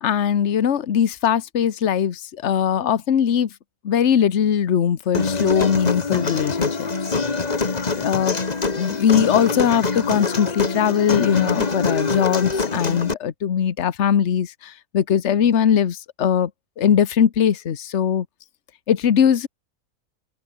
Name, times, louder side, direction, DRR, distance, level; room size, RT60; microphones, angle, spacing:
voice 1, 0.0-3.5 3.8-6.9 8.0-8.4 8.8-14.5 14.9-16.5 16.8-18.2 18.9-19.5, left 8 dB, 50° left, 1.3 m, -20 dB
Human voice, 5.1-13.1, left 4 dB, 30° left, 1.4 m, -24 dB
open air
omnidirectional pair, 1.6 m